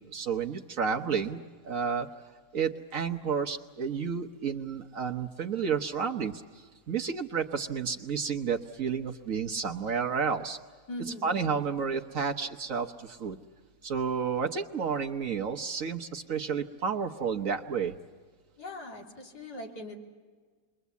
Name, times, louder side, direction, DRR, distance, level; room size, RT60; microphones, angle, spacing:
voice 1, 0.1-1.4 1.6-2.1 2.5-6.4 6.9-10.6 11.1-13.4 13.8-17.9, right 6 dB, 50° right, 4 dB, 1.2 m, -31 dB
voice 2, 10.9-11.5 18.6-20.0, left 1 dB, 55° left, 0 dB, 3.6 m, -41 dB
29.0 x 22.5 x 8.2 m, 1.5 s
omnidirectional pair, 2.1 m